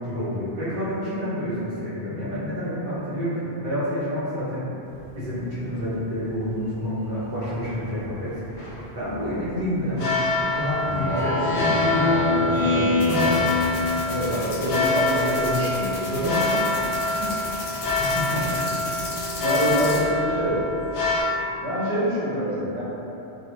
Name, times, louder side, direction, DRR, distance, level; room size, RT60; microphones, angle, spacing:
voice 1, 0.0-4.7 5.1-10.1 10.5-12.1 12.3-13.5 18.0-18.6, left 1 dB, 55° right, -11 dB, 0.9 m, -29 dB
sound 1, 4.9-21.2, left 2 dB, 60° left, 0.6 m, -27 dB
Speech synthesizer, 10.8-14.4, left 2 dB, 25° right, 0.6 m, -24 dB
sound 2, 13.0-20.0, left 3 dB, 80° left, 0.9 m, -35 dB
voice 2, 14.1-16.8 17.2-17.3 19.4-20.6 21.6-22.8, equal, 85° right, -9 dB, 1.0 m, -25 dB
2.4 x 2.1 x 2.9 m, 2.9 s
omnidirectional pair, 1.1 m